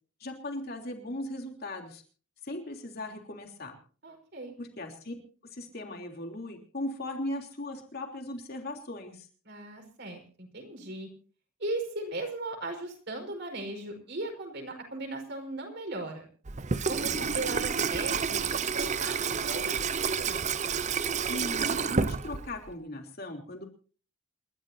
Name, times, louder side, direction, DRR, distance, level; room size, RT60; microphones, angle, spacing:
voice 1, 0.2-2.0 2.4-3.8 4.6-5.1 5.5-9.3 17.0-17.3 21.3-23.6, left 1 dB, 45° left, 3 dB, 3.3 m, -38 dB
voice 2, 4.0-4.5 9.4-11.1 11.6-16.2 16.9-20.6, right 2 dB, 50° right, 3 dB, 5.1 m, -38 dB
Water tap faucet / Sink (filling or washing), 16.5-22.7, right 6 dB, 35° right, 0.6 m, -29 dB
28.5 x 12.5 x 2.8 m, 0.40 s
head